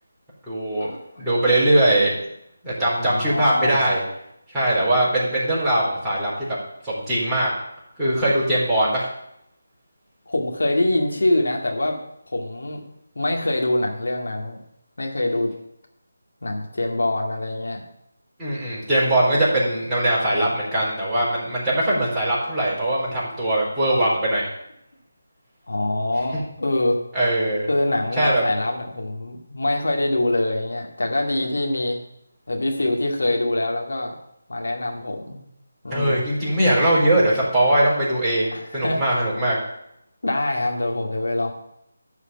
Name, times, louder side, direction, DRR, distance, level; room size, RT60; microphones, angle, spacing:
voice 1, 0.5-0.9 1.2-2.2 2.6-4.0 4.5-6.6 6.8-7.5 8.0-9.1 18.4-24.5 27.1-27.7 28.2-28.4 35.9-39.6, right 1 dB, 5° right, -10 dB, 4.3 m, -21 dB
voice 2, 2.9-3.8 10.3-12.0 12.3-12.8 13.2-14.6 15.0-15.5 16.4-17.8 25.7-27.0 27.7-32.0 32.5-34.1 34.5-35.4 35.8-36.3 38.5-39.0 40.2-41.5, left 1 dB, 70° left, 1 dB, 2.2 m, -24 dB
12.5 x 5.0 x 8.2 m, 0.79 s
figure-of-eight pair, 160°, 0 cm